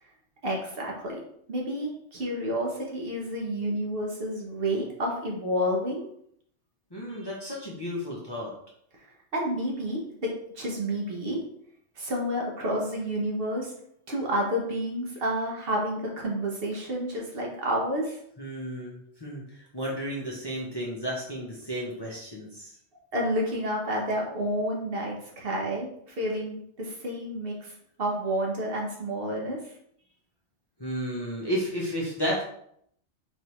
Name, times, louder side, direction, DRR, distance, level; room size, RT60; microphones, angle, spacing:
voice 1, 0.4-1.2 1.5-6.1 9.3-11.4 12.0-13.7 14.1-18.2 23.1-27.7 28.0-29.7, equal, 55° right, -1 dB, 1.1 m, -30 dB
voice 2, 6.9-8.5 18.4-22.7 30.8-32.4, equal, 25° left, -4 dB, 0.7 m, -33 dB
4.1 x 3.3 x 3.0 m, 0.69 s
omnidirectional pair, 1.2 m